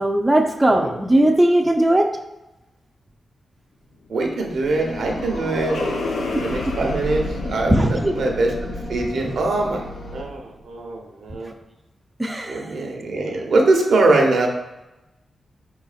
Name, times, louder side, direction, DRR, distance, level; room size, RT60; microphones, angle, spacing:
voice 1, 0.0-2.1 6.3-6.4 7.7-8.1 12.2-12.7, right 1 dB, 20° right, 3 dB, 0.5 m, -18 dB
sound 1, 4.0-10.5, left 2 dB, 90° left, 0.6 m, -31 dB
voice 2, 4.1-6.1 6.4-7.2 7.5-8.5 8.9-9.8 10.1-11.5 12.5-14.5, right 2 dB, 80° right, 2 dB, 0.8 m, -22 dB
sound 2, 4.7-10.2, left 1 dB, 70° left, 1.0 m, -35 dB
4.9 x 4.0 x 2.4 m, 1.0 s
cardioid pair, 60°, 0 cm